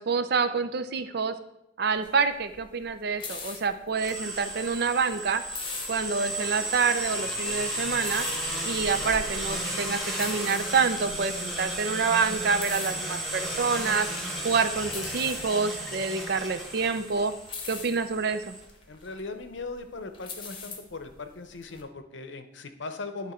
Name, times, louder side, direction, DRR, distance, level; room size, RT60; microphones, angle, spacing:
voice 1, 0.0-1.3 1.8-5.4 5.9-8.3 8.6-14.1 14.4-17.3 17.7-18.5, right 5 dB, 55° right, 11 dB, 0.5 m, -27 dB
sound 1, 1.9-21.8, left 5 dB, 30° left, 0.9 m, -43 dB
sound 2, 3.9-18.6, right 1 dB, ahead, 1.4 m, -34 dB
voice 2, 18.9-23.3, left 3 dB, 75° left, 9 dB, 0.7 m, -39 dB
10.5 x 3.6 x 4.3 m, 0.84 s
head